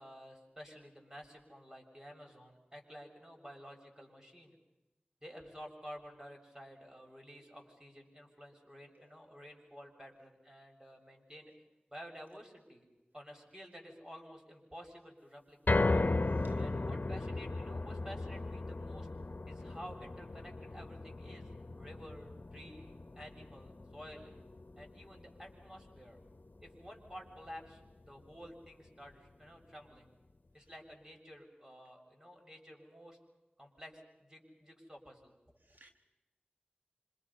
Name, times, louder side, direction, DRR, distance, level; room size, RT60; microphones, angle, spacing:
voice 1, 0.0-4.6 5.2-11.5 11.9-12.9 13.1-15.8 16.6-19.1 19.5-21.5 21.8-24.3 24.8-26.2 26.6-27.8 28.1-30.1 30.5-33.2 33.6-35.4, equal, 20° right, 1 dB, 7.0 m, -52 dB
sound 1, 15.7-27.9 28.3-28.4 28.9-29.0, left 2 dB, 70° left, 1.1 m, -37 dB
voice 2, 16.3-16.7 35.7-35.9, right 1 dB, 70° right, 4 dB, 1.5 m, -62 dB
27.5 x 26.5 x 5.6 m, 1.0 s
wide cardioid pair, 50°, 3 cm